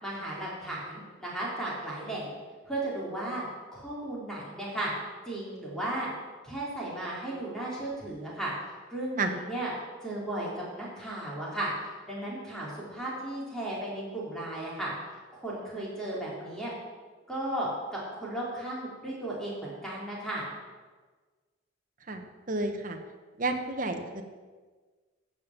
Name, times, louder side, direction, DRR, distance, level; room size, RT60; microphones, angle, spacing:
voice 1, 0.0-2.3 2.7-3.5 3.7-4.9 5.3-6.1 6.4-9.7 10.0-14.9 15.3-16.7 17.3-20.5, right 1 dB, 5° left, -6 dB, 3.6 m, -35 dB
voice 2, 22.1-23.0 23.4-24.2, right 2 dB, 40° right, 5 dB, 1.1 m, -31 dB
14.0 x 5.4 x 7.4 m, 1.4 s
head